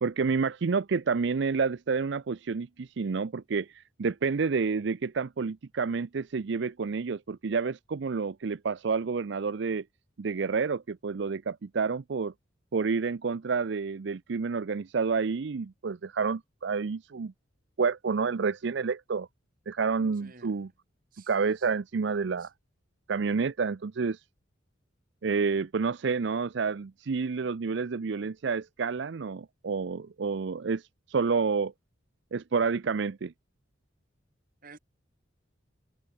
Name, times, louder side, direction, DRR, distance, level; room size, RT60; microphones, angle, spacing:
voice 1, 0.0-9.8 10.2-12.3 12.7-17.3 17.8-19.3 19.7-20.7 21.3-22.5 23.1-24.2 25.2-31.7 32.3-33.3, right 5 dB, 60° right, 0.5 m, -29 dB
voice 2, 20.2-20.6 21.1-21.3 22.4-22.5 34.6-34.8, right 3 dB, 45° right, 2.3 m, -51 dB
head